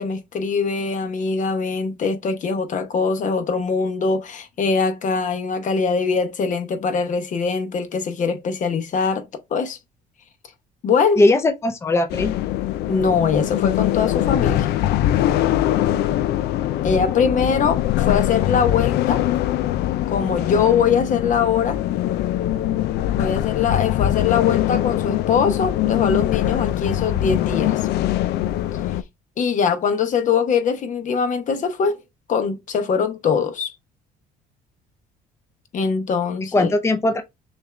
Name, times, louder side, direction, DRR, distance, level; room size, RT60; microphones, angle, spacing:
voice 1, 0.0-9.8 10.8-11.2 12.9-14.7 16.8-19.2 20.1-21.8 23.1-27.8 29.4-32.0 32.3-33.7 35.7-36.7, left 5 dB, 50° left, 0.9 m, -22 dB
voice 2, 11.2-12.3 36.5-37.2, left 2 dB, 15° left, 0.6 m, -19 dB
sound 1, 12.1-29.0, left 13 dB, 75° left, 0.4 m, -22 dB
6.4 x 2.4 x 3.2 m
cardioid pair, 110°, 17 cm